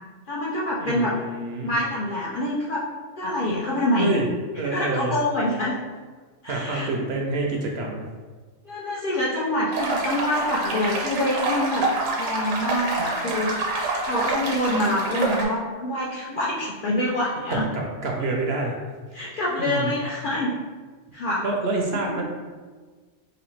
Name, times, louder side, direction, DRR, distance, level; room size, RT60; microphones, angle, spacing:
voice 1, 0.3-1.2 1.6-2.8 3.2-4.1 4.6-5.8 6.4-6.9 8.7-11.9 12.2-13.5 14.0-17.6 19.1-20.6 21.1-21.4 22.0-22.2, left 1 dB, 65° left, -5 dB, 0.5 m, -26 dB
voice 2, 0.8-1.7 4.0-4.3 4.5-5.2 6.4-8.0 17.5-18.7 19.6-19.9 21.4-22.2, right 3 dB, 65° right, 0 dB, 0.7 m, -27 dB
sound 1, 9.7-15.4, right 2 dB, 85° right, 1.2 m, -27 dB
4.0 x 2.7 x 3.1 m, 1.4 s
omnidirectional pair, 1.3 m